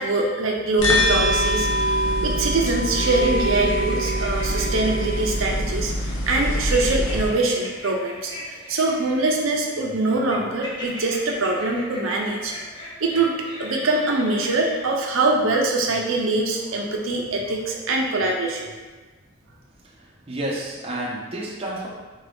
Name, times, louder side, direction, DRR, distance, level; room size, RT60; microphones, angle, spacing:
voice 1, 0.0-12.5 13.0-18.7, right 2 dB, 75° right, 0 dB, 0.5 m, -23 dB
sound 1, 0.8-7.3, equal, 70° left, 0.6 m, -23 dB
sound 2, 3.1-5.4 6.4-14.8, left 1 dB, 20° left, 0.7 m, -38 dB
voice 2, 19.8-21.9, right 1 dB, 30° right, -4 dB, 0.5 m, -31 dB
3.8 x 2.6 x 3.3 m, 1.3 s
head